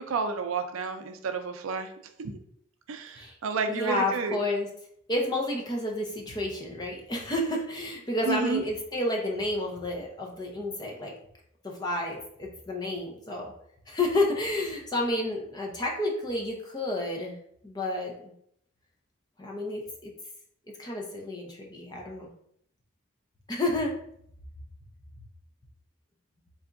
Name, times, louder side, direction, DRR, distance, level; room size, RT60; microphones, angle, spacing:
voice 1, 0.0-1.9 2.2-2.4 2.9-4.4 8.3-8.6, right 4 dB, 75° right, 7 dB, 0.4 m, -31 dB
voice 2, 3.7-4.7 5.1-11.1 11.6-13.5 13.9-17.4 17.6-18.3 19.4-20.1 20.8-22.3 23.5-23.9, left 1 dB, 20° left, 0 dB, 0.6 m, -30 dB
3.8 x 3.4 x 2.5 m, 0.69 s
head